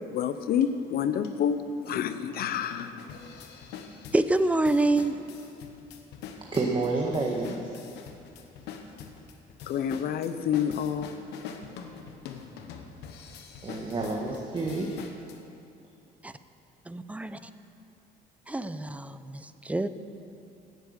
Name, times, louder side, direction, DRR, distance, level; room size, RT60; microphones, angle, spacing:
voice 1, 0.1-2.9 9.7-11.1, left 8 dB, 65° left, 11 dB, 0.8 m, -28 dB
sound 1, 0.6-0.7 1.2-1.3 1.9-15.4, left 6 dB, 90° left, 1.2 m, -44 dB
voice 2, 4.1-5.2 16.2-16.3 16.9-17.4 18.5-19.9, right 2 dB, 10° right, 12 dB, 0.6 m, -26 dB
voice 3, 6.5-7.8 13.6-15.0, right 3 dB, 30° right, -2 dB, 1.4 m, -29 dB
17.0 x 8.3 x 6.6 m, 2.6 s
cardioid pair, 110°, 17 cm